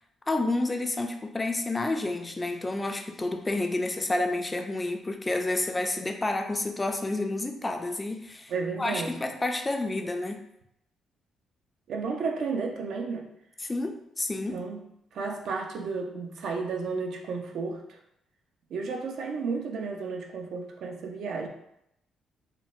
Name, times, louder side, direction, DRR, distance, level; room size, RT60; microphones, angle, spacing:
voice 1, 0.3-8.5 8.8-10.4 13.6-14.6, left 2 dB, 20° left, 5 dB, 0.3 m, -29 dB
voice 2, 8.5-9.2 11.9-13.3 14.5-14.9 15.1-18.0 18.7-21.5, right 4 dB, 70° right, 2 dB, 0.4 m, -32 dB
4.3 x 2.0 x 2.4 m, 0.79 s
cardioid pair, 90°, 0 cm